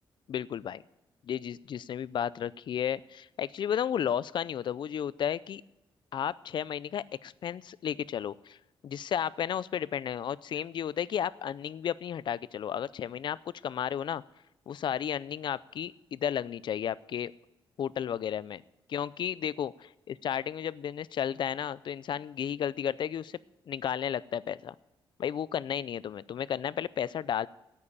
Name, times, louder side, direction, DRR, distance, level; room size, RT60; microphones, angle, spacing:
voice 1, 0.3-0.8 1.2-5.6 6.1-8.6 8.8-13.4 13.6-14.2 14.7-17.3 17.8-18.6 18.9-19.7 20.1-23.4 23.7-24.7 25.2-27.5, left 9 dB, 55° left, 20 dB, 0.4 m, -33 dB
9.9 x 8.7 x 8.7 m, 0.94 s
cardioid pair, 120°, 9 cm